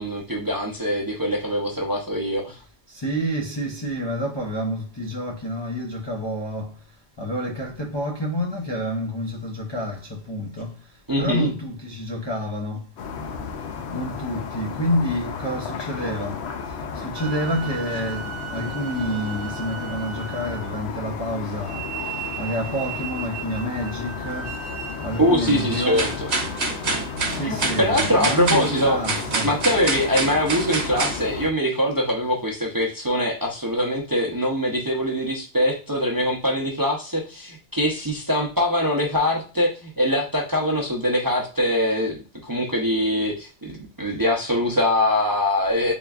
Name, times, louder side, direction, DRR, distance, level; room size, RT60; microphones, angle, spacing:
voice 1, 0.0-2.6 11.1-11.5 25.2-26.3 27.4-29.0 29.4-42.2 42.5-45.9, equal, 25° right, 0.4 m, -23 dB
voice 2, 2.9-6.7 7.2-10.7 11.2-12.8 13.9-16.4 17.0-21.8 22.4-24.5 25.0-26.1 27.2-29.5, equal, 45° left, 0.3 m, -28 dB
sound 1, 13.0-31.5, left 5 dB, 65° left, 0.8 m, -34 dB
sound 2, 17.2-20.9 21.6-27.3, right 10 dB, 75° right, 1.0 m, -37 dB
sound 3, 25.5-31.2, right 3 dB, 55° right, 1.1 m, -27 dB
3.7 x 3.4 x 2.3 m
omnidirectional pair, 1.3 m